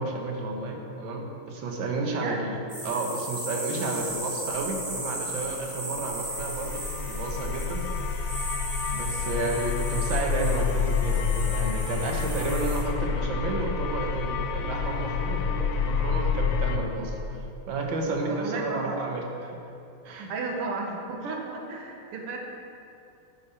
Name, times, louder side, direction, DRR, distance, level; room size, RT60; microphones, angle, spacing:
voice 1, 0.0-2.6 2.8-8.3 8.9-17.2 17.7-19.6 20.0-20.3, right 3 dB, 65° right, 1 dB, 1.8 m, -31 dB
sound 1, 2.7-12.8, right 1 dB, 25° right, 2.9 m, -36 dB
sound 2, 6.1-16.8, left 6 dB, 80° left, 1.5 m, -28 dB
voice 2, 18.3-19.0 20.3-22.4, right 3 dB, 85° right, 1 dB, 2.2 m, -34 dB
9.6 x 9.3 x 4.4 m, 2.6 s
omnidirectional pair, 2.4 m